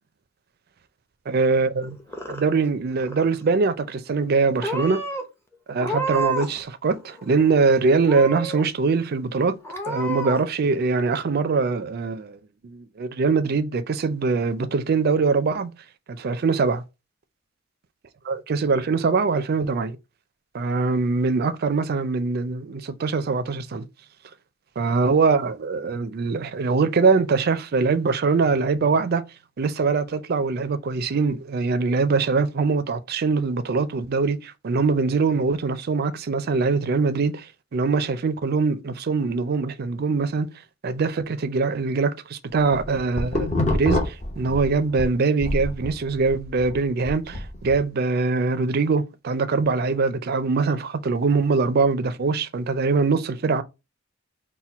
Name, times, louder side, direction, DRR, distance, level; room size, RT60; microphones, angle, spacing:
voice 1, 1.3-2.0 2.3-5.0 5.7-9.6 9.9-15.7 16.1-16.8 18.2-20.0 20.5-23.8 24.8-29.2 29.6-37.5 37.7-40.5 40.8-53.6, right 4 dB, 50° right, 0.4 m, -23 dB
Purr / Meow, 1.8-2.7 3.0-3.5 4.2-4.4 4.6-5.2 5.7-6.6 6.9-7.6 8.0-8.6 9.1-9.2 9.6-10.4, right 2 dB, 10° left, 0.7 m, -30 dB
sound 1, 42.5-45.1 45.4-47.8, left 1 dB, 35° left, 1.0 m, -26 dB
4.3 x 2.2 x 4.3 m
head